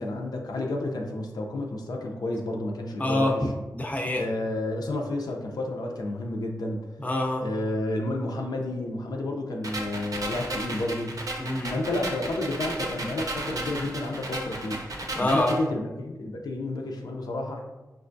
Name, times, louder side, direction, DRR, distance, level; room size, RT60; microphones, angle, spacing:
voice 1, 0.0-3.5 4.1-6.8 7.4-11.2 11.7-14.8 15.1-17.6, left 2 dB, 90° left, 1 dB, 0.5 m, -31 dB
voice 2, 3.0-4.2 7.0-7.4 11.4-11.8 15.1-15.6, left 1 dB, 25° left, 1 dB, 0.5 m, -26 dB
sound 1, 9.6-15.6, right 1 dB, 65° right, 0.6 m, -34 dB
5.2 x 2.2 x 2.5 m, 1.1 s
wide cardioid pair, 85°, 7 cm